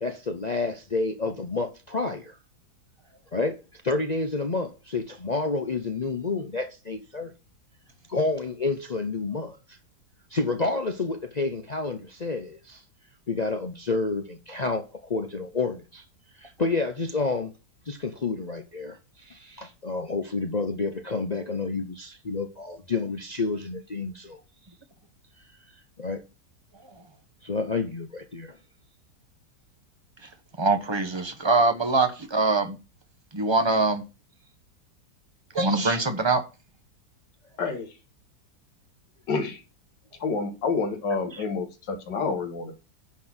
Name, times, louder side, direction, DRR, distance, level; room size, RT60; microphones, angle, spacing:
voice 1, 0.0-2.4 3.3-3.6 3.8-7.3 8.1-9.6 10.3-12.8 13.3-16.0 16.4-17.5 17.9-24.4 26.0-26.2 27.4-28.6, left 3 dB, 50° left, 0.5 m, -29 dB
voice 2, 30.6-32.8 33.3-34.0 35.5-36.4, right 3 dB, 20° right, 0.8 m, -23 dB
voice 3, 37.6-37.9 39.3-39.6 40.2-42.7, left 4 dB, 90° left, 2.1 m, -28 dB
10.5 x 4.0 x 6.0 m
omnidirectional pair, 1.8 m